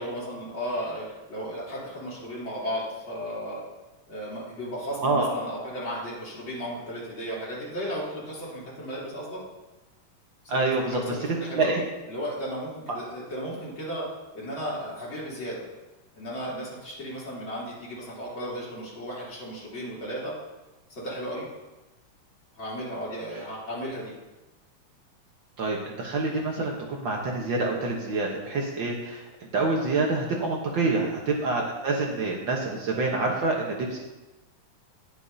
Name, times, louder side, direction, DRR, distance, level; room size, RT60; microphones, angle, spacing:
voice 1, 0.0-3.6 4.1-9.4 10.4-14.0 14.3-15.6 16.1-20.3 20.9-21.5 22.6-24.1 30.8-31.1, equal, 35° left, -7 dB, 4.0 m, -35 dB
voice 2, 5.0-5.3 10.5-11.2 11.6-11.8 25.6-34.0, right 3 dB, 80° right, -1 dB, 1.0 m, -27 dB
19.5 x 7.2 x 2.8 m, 1.1 s
omnidirectional pair, 3.8 m